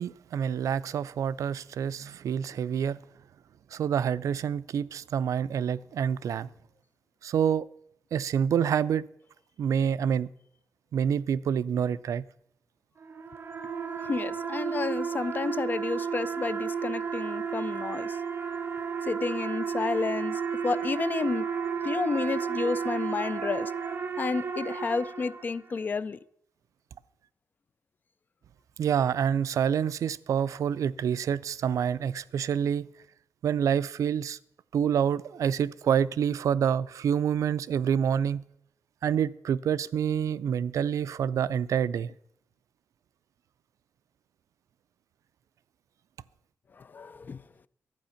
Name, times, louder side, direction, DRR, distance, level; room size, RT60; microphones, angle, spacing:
voice 1, 0.0-3.0 3.7-6.5 7.2-7.7 8.1-9.1 9.6-10.3 10.9-12.2 28.8-32.9 33.4-34.4 34.7-38.4 39.0-42.1, right 8 dB, 70° right, 0.4 m, -27 dB
sound 1, 13.0-25.8, right 6 dB, 40° right, 1.0 m, -33 dB
voice 2, 14.0-18.2 19.0-21.5 21.8-23.7 24.2-26.2 46.8-47.4, left 4 dB, 35° left, 0.3 m, -31 dB
12.0 x 8.8 x 5.7 m
wide cardioid pair, 165°, 6 cm